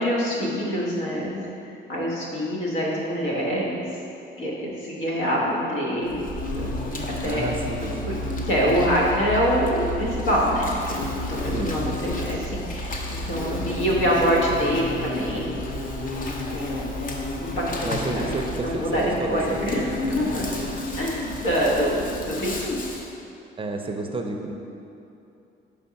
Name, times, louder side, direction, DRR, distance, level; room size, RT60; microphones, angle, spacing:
voice 1, 0.0-1.4 1.9-3.9 4.4-6.3 6.5-7.5 8.5-15.6 16.5-16.9 17.4-20.7 21.0-22.8, equal, 80° left, -4 dB, 1.3 m, -25 dB
Insect, 6.1-23.1, left 1 dB, 45° left, 0.8 m, -31 dB
voice 2, 7.2-8.2 11.5-11.8 17.8-19.6 19.9-20.4 23.6-24.5, right 3 dB, 25° right, 3 dB, 0.5 m, -31 dB
5.3 x 3.5 x 5.7 m, 2.7 s
cardioid pair, 90°, 20 cm